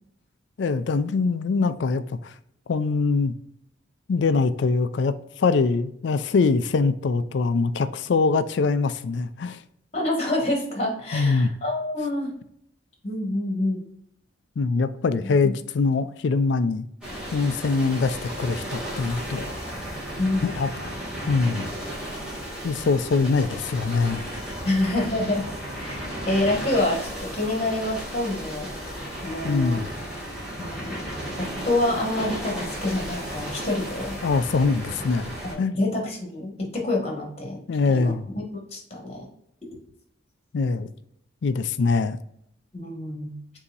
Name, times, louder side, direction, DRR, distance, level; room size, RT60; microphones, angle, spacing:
voice 1, 0.6-2.3 2.7-3.3 4.1-9.6 11.1-11.5 14.6-16.9 17.3-19.5 20.4-20.9 21.3-21.7 22.6-24.2 29.4-29.9 34.2-35.7 37.7-38.3 40.5-40.9 41.4-42.2, left 4 dB, 65° left, 0.4 m, -23 dB
voice 2, 9.9-12.3 13.0-13.8 15.2-15.5 20.2-20.5 24.6-25.4 25.8-29.8 30.6-31.0 31.4-34.1 35.4-37.6 37.9-38.1 38.7-39.3 42.7-43.4, left 1 dB, 35° left, 1.4 m, -27 dB
sound 1, 17.0-35.5, equal, 5° right, 1.7 m, -34 dB
6.8 x 2.7 x 2.5 m
head